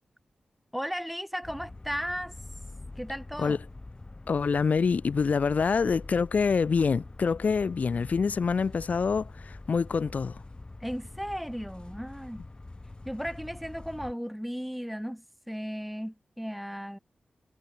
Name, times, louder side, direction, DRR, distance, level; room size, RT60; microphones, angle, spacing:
voice 1, 0.7-2.3 3.0-3.6 10.8-12.4 13.0-17.0, equal, ahead, 2.8 m, -35 dB
sound 1, 1.4-14.1, left 2 dB, 30° left, 7.2 m, -45 dB
voice 2, 4.3-10.4, left 5 dB, 60° left, 0.4 m, -26 dB
cardioid pair, 50°, 3 cm